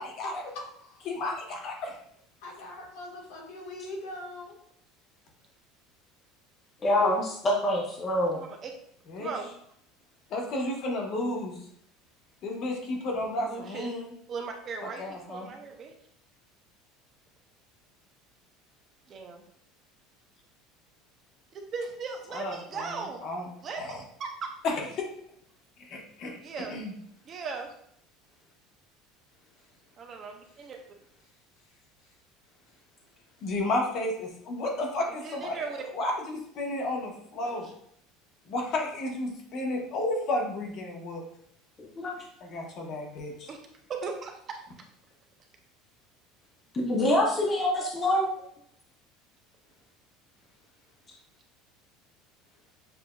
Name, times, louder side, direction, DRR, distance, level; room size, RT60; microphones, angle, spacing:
voice 1, 0.0-0.4 1.1-2.0 9.1-9.3 10.3-11.6 12.4-14.1 14.8-15.5 22.3-23.5 23.8-24.0 24.6-24.8 25.9-26.4 26.7-26.9 33.4-37.7 38.5-41.2 42.4-43.5, left 2 dB, 45° left, 1 dB, 1.0 m, -32 dB
voice 2, 0.5-1.1 2.4-4.6, left 1 dB, 75° left, -1 dB, 1.4 m, -41 dB
voice 3, 6.8-8.4 41.8-42.1 46.7-48.3, left 1 dB, 20° left, -2 dB, 0.7 m, -25 dB
voice 4, 8.3-8.7 9.2-9.5 13.4-15.9 19.1-19.4 21.7-23.2 23.6-23.9 24.2-24.5 26.4-26.8 27.2-27.7 30.0-30.8 35.2-35.8 37.4-37.6 43.5-43.6 43.9-44.6, right 5 dB, 30° right, 3 dB, 0.5 m, -38 dB
6.8 x 2.6 x 2.3 m, 0.68 s
cardioid pair, 160°, 0 cm